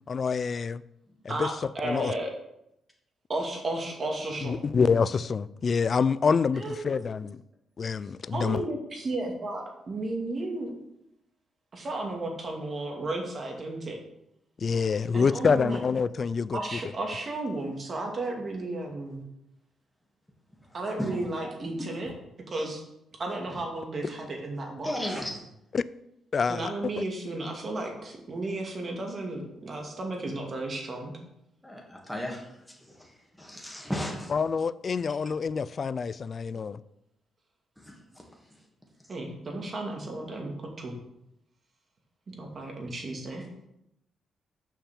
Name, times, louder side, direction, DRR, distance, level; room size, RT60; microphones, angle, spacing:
voice 1, 0.1-0.8 1.2-1.5 1.8-2.1 4.4-7.4 7.8-8.6 14.6-16.6 25.7-25.8 26.3-26.7 27.0-27.1 34.3-36.8, left 5 dB, 45° left, 16 dB, 0.3 m, -26 dB
voice 2, 1.3-2.3 3.3-4.6 6.5-6.9 8.3-10.7 11.7-14.0 15.1-15.8 16.5-19.2 20.7-22.1 22.5-22.8 23.2-25.2 26.5-31.1 39.1-40.9 42.3-43.4, right 2 dB, 40° right, 1 dB, 2.4 m, -34 dB
voice 3, 24.8-25.4 31.6-32.4 32.9-33.1 33.4-34.3, equal, 5° left, -1 dB, 2.4 m, -34 dB
7.3 x 5.7 x 7.0 m, 0.81 s
cardioid pair, 100°, 0 cm